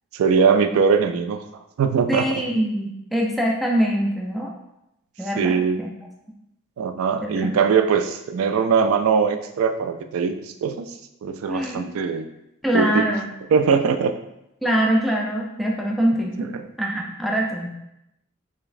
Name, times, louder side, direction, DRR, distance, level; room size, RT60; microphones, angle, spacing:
voice 1, 0.1-1.4 1.8-2.4 5.4-5.8 6.8-10.3 10.6-10.9 11.2-12.3 12.7-13.0 13.5-14.1 16.4-16.6, right 6 dB, 90° right, 8 dB, 0.3 m, -21 dB
voice 2, 2.1-4.5 5.2-5.9 7.2-7.8 11.5-11.9 12.6-13.3 14.6-16.5 16.8-17.7, equal, ahead, -2 dB, 0.4 m, -23 dB
3.9 x 3.4 x 2.5 m, 0.85 s
head